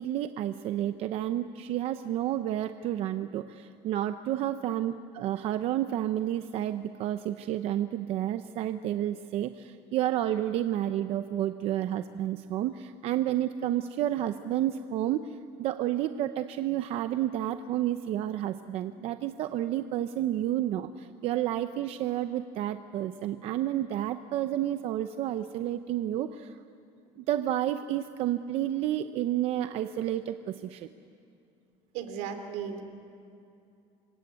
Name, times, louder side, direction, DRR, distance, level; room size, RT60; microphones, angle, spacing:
voice 1, 0.0-15.3 15.6-26.6 27.2-30.9, right 12 dB, 50° right, 9 dB, 0.7 m, -30 dB
voice 2, 31.9-32.8, right 7 dB, 80° right, 8 dB, 3.3 m, -35 dB
26.5 x 24.0 x 9.4 m, 2.6 s
cardioid pair, 175°, 13 cm